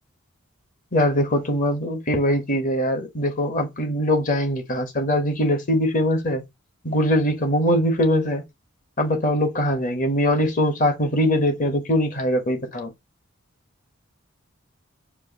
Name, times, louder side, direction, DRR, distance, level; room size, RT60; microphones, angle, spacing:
voice 1, 0.9-6.4 6.8-8.4 9.0-12.9, equal, 40° left, 1.3 m, -22 dB
4.7 x 2.5 x 4.2 m
head